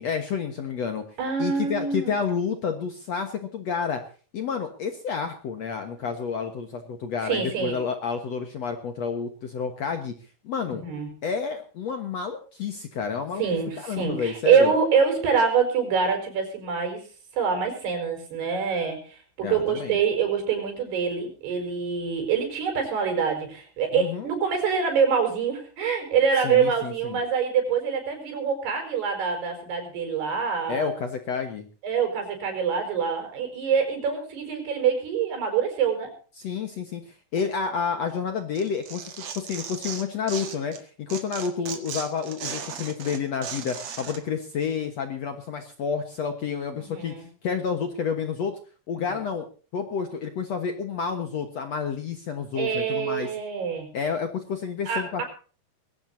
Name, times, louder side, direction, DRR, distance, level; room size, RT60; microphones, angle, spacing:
voice 1, 0.0-1.0 1.4-4.0 4.3-10.1 10.4-10.8 11.2-14.7 19.4-20.0 23.9-24.3 26.4-27.2 30.7-31.7 36.4-37.0 37.3-47.1 47.4-48.6 48.9-49.5 49.7-53.3 53.9-55.2, left 6 dB, 60° left, 7 dB, 1.9 m, -30 dB
voice 2, 1.2-2.2 7.2-7.8 10.7-11.1 13.4-17.0 17.3-30.9 31.8-36.1 41.7-41.8 46.8-47.3 48.9-49.2 52.6-53.9 54.9-55.2, right 6 dB, 80° right, 5 dB, 6.9 m, -25 dB
Tearing, 38.5-40.8 41.1-44.2, right 7 dB, 50° right, 2.5 m, -36 dB
21.5 x 17.0 x 2.7 m, 0.39 s
omnidirectional pair, 4.6 m